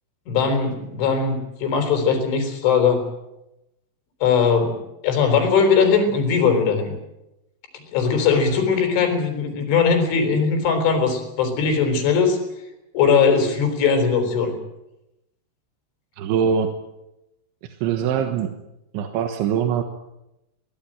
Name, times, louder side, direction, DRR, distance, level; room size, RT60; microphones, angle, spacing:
voice 1, 0.3-3.0 4.2-6.9 7.7-12.4 12.9-14.5, left 5 dB, 90° left, 6 dB, 6.3 m, -20 dB
voice 2, 16.2-16.8 17.6-18.6 18.9-19.8, right 7 dB, 90° right, 6 dB, 3.7 m, -23 dB
23.0 x 17.5 x 9.0 m, 0.91 s
omnidirectional pair, 5.3 m